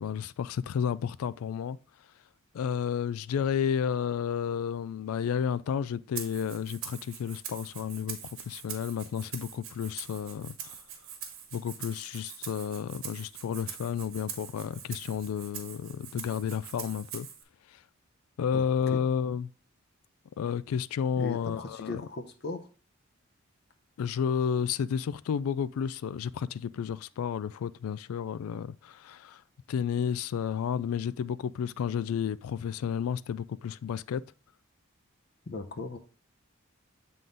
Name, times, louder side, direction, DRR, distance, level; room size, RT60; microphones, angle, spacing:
voice 1, 0.0-1.8 2.5-10.8 11.5-17.3 17.7-17.8 18.4-19.5 20.4-22.0 24.0-29.4 29.7-34.2, left 7 dB, 85° left, 0.3 m, -31 dB
Rattle (instrument), 6.1-17.4, right 8 dB, 80° right, 1.3 m, -43 dB
voice 2, 21.2-22.7 35.5-36.0, left 3 dB, 50° left, 0.6 m, -37 dB
7.7 x 3.8 x 3.8 m
head